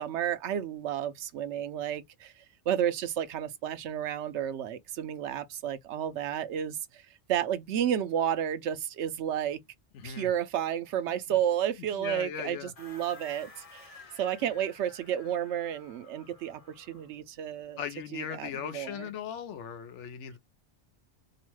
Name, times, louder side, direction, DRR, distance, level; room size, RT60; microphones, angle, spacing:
voice 1, 0.0-2.3 2.7-7.0 7.3-9.6 10.0-17.8 18.1-19.1, right 10 dB, 80° right, 0.9 m, -31 dB
voice 2, 9.9-10.3 11.3-11.4 11.9-12.7 13.9-14.5 17.8-20.4, left 8 dB, 80° left, 1.0 m, -39 dB
sound 1, 12.8-17.2, left 3 dB, 35° left, 0.7 m, -53 dB
2.9 x 2.1 x 3.0 m
omnidirectional pair, 1.2 m